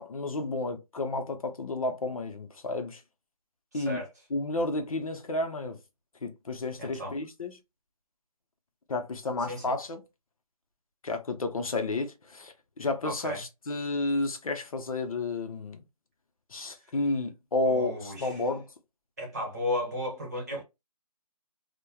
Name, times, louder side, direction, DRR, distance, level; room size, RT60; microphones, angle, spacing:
voice 1, 0.0-3.0 3.7-4.0 4.3-5.8 6.2-7.6 8.9-10.0 11.0-15.8 16.5-18.7, left 2 dB, 65° left, 0.6 m, -31 dB
voice 2, 3.7-4.1 6.8-7.2 9.5-9.7 13.0-13.4 17.6-18.4 19.2-20.6, left 1 dB, 25° right, 1.0 m, -34 dB
3.0 x 2.1 x 2.2 m
hypercardioid pair, 175°, 20 cm